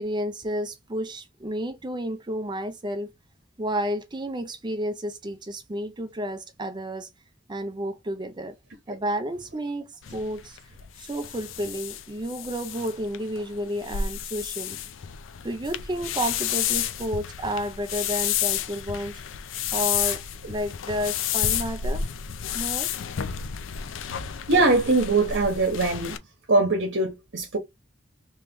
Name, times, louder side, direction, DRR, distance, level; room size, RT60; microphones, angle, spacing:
voice 1, 0.0-3.1 3.6-7.1 7.5-8.6 8.9-10.6 11.0-14.8 15.4-19.2 19.7-22.1 22.5-22.9, equal, 25° right, 0.6 m, -31 dB
sound 1, 10.0-26.2, left 9 dB, 75° left, 0.4 m, -31 dB
voice 2, 24.5-26.2 26.5-27.6, right 2 dB, 60° right, 1.0 m, -22 dB
3.1 x 2.9 x 3.5 m
head